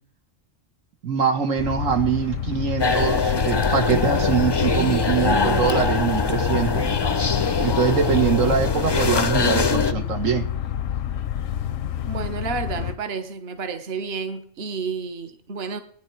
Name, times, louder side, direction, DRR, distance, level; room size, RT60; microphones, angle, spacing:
voice 1, 1.0-6.9 7.6-10.5, right 7 dB, 85° right, 6 dB, 1.8 m, -23 dB
sound 1, 1.6-13.0, left 10 dB, 90° left, 1.1 m, -29 dB
sound 2, 2.8-9.9, left 4 dB, 35° left, 0.4 m, -22 dB
voice 2, 12.0-15.8, right 5 dB, 55° right, 8 dB, 1.4 m, -30 dB
19.5 x 10.0 x 4.5 m, 0.62 s
omnidirectional pair, 1.3 m